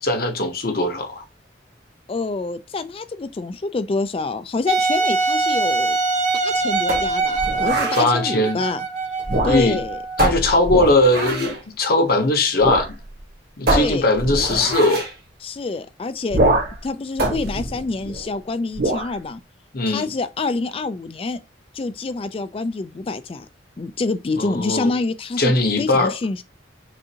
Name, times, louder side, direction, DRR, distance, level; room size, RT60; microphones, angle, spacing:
voice 1, 0.0-1.2 8.0-8.6 9.5-9.8 10.2-12.9 13.6-15.1 19.7-20.1 24.4-24.9 25.4-26.2, left 2 dB, 55° left, 0.9 m, -19 dB
voice 2, 2.1-6.0 6.3-8.8 9.4-10.0 13.7-14.1 15.4-16.4 16.8-19.4 19.9-21.4 21.7-23.5 23.8-25.5 25.8-26.4, left 3 dB, 30° left, 0.3 m, -26 dB
Wind instrument woodwind instrument, 4.7-10.3, right 3 dB, 40° right, 0.7 m, -23 dB
sound 1, 6.9-8.1 9.2-9.8 10.2-11.6 12.6-12.9 13.2-13.3 13.7-15.1 16.3-16.8 17.2-18.3 18.7-19.1, right 1 dB, 60° right, 1.5 m, -23 dB
6.1 x 2.6 x 2.8 m
head